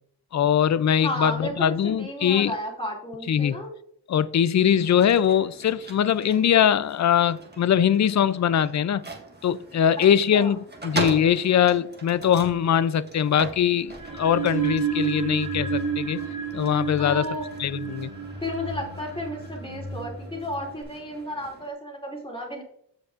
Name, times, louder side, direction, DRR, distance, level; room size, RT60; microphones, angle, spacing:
voice 1, 0.3-2.5 3.3-3.5 4.1-9.0 9.4-16.2 16.5-17.3 17.6-18.1, left 9 dB, 45° left, 0.4 m, -22 dB
voice 2, 1.0-3.7 10.3-10.5 17.0-17.5 18.4-22.6, left 1 dB, 10° left, 2.5 m, -33 dB
sound 1, 4.5-21.7, right 2 dB, 25° right, 1.6 m, -41 dB
sound 2, 13.9-20.8, right 5 dB, 50° right, 2.1 m, -31 dB
14.5 x 5.2 x 2.5 m
wide cardioid pair, 125°, 42 cm